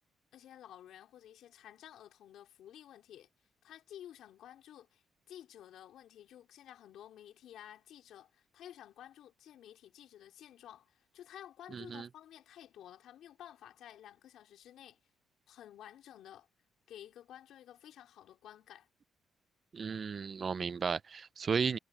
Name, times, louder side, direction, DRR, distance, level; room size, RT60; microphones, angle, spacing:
voice 1, 0.3-3.3 3.6-15.0 15.5-16.5 16.9-18.9, left 11 dB, 75° left, 4.6 m, -53 dB
voice 2, 11.7-12.1 19.7-21.8, right 6 dB, 40° right, 0.6 m, -34 dB
cardioid pair, 90°, 0 cm